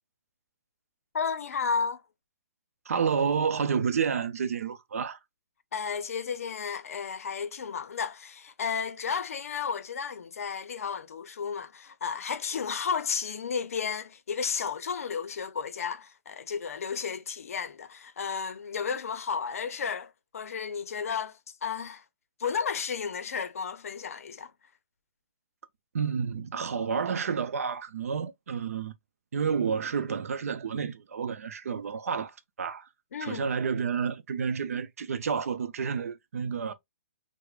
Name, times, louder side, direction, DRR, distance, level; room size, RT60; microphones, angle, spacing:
voice 1, 1.1-2.0 5.7-22.0 22.4-24.5 33.1-33.5, left 6 dB, 80° left, 0.5 m, -33 dB
voice 2, 2.9-5.2 25.9-28.9 29.3-32.9 33.2-36.7, right 6 dB, 80° right, 0.5 m, -30 dB
4.5 x 2.1 x 2.3 m
hypercardioid pair, 150°, 8 cm